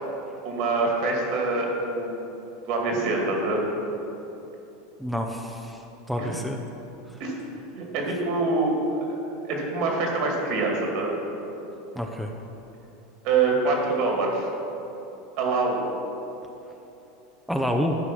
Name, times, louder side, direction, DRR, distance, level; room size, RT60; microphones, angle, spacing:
voice 1, 0.4-2.3 2.7-3.6 6.2-6.3 7.2-7.3 7.7-9.0 9.4-11.1 13.2-14.5 15.4-15.8, right 3 dB, 60° right, 0 dB, 2.2 m, -25 dB
voice 2, 5.0-5.8 6.1-6.6 12.0-12.3 17.5-18.0, equal, ahead, 2 dB, 0.7 m, -28 dB
11.5 x 4.7 x 6.1 m, 3.0 s
hypercardioid pair, 100°, 0 cm